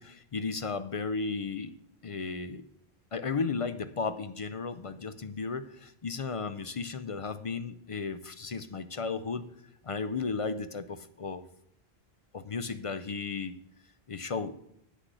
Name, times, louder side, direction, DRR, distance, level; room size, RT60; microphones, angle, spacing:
voice 1, 0.0-1.7 2.0-2.6 3.1-9.5 9.8-11.4 12.3-13.6 14.1-14.6, left 4 dB, 45° left, 12 dB, 0.4 m, -34 dB
8.2 x 6.0 x 7.8 m, 0.74 s
omnidirectional pair, 1.0 m